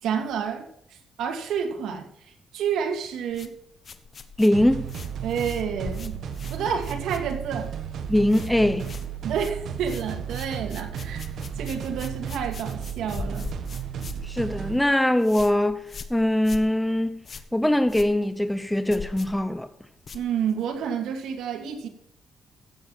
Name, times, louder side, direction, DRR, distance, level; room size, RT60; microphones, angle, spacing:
voice 1, 0.0-3.6 5.2-6.2 6.5-7.7 9.2-11.3 11.6-13.5 20.1-21.9, right 7 dB, 90° right, 2.4 m, -29 dB
sound 1, 3.3-7.7 7.9-8.5 8.8-20.8, left 5 dB, 45° left, 1.3 m, -42 dB
voice 2, 4.4-4.9 8.1-8.9 14.2-17.2 17.5-19.7, left 1 dB, 5° left, 0.8 m, -22 dB
sound 2, 4.5-14.8, right 8 dB, 65° right, 1.4 m, -34 dB
15.5 x 7.6 x 5.9 m
cardioid pair, 115°, 0 cm